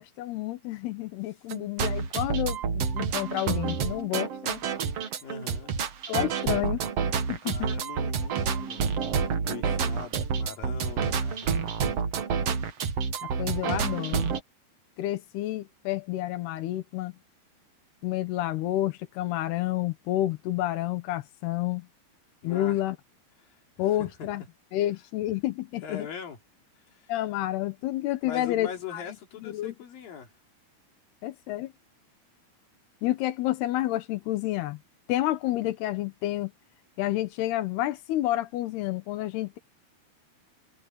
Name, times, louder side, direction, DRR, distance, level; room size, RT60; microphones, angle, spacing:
voice 1, 0.0-4.6 6.1-6.8 7.3-7.7 13.2-14.3 15.0-17.1 18.0-21.9 22.4-23.0 23.8-24.4 24.7-26.1 27.1-29.0 29.4-29.7 31.2-31.7 33.0-34.8 35.1-36.5 37.0-39.6, left 14 dB, 90° left, 3.2 m, -29 dB
sound 1, 1.5-14.4, right 6 dB, 50° right, 2.1 m, -29 dB
voice 2, 5.2-5.7 7.4-11.5 22.4-22.8 23.4-23.6 24.0-24.3 25.8-26.4 26.9-27.1 28.2-30.3, left 7 dB, 65° left, 4.6 m, -41 dB
omnidirectional pair, 4.5 m